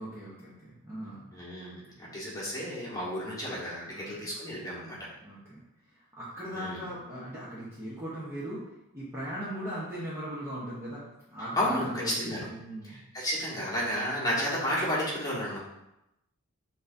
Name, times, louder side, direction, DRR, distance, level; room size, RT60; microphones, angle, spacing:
voice 1, 0.0-1.3 3.9-4.3 5.2-5.6 5.9-13.0, equal, 10° right, -8 dB, 0.9 m, -39 dB
voice 2, 1.3-5.0 6.5-6.8 11.6-11.9 12.2-12.5 12.8-15.6, equal, 15° left, -7 dB, 1.3 m, -32 dB
7.0 x 2.7 x 2.6 m, 0.88 s
head